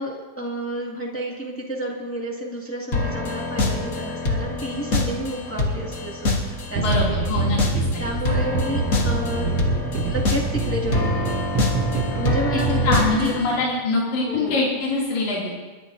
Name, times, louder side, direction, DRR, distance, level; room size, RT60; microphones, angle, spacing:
voice 1, 0.0-7.5 8.0-9.5 10.1-11.7 12.1-13.3 14.2-14.6, equal, 5° left, -3 dB, 1.3 m, -31 dB
sound 1, 2.9-13.6, left 2 dB, 45° left, 1.3 m, -26 dB
voice 2, 6.8-8.0 12.8-15.5, left 3 dB, 75° left, -5 dB, 3.9 m, -24 dB
sound 2, 6.8-13.2, right 3 dB, 65° right, 1.5 m, -25 dB
30.0 x 11.0 x 2.6 m, 1.3 s
omnidirectional pair, 3.4 m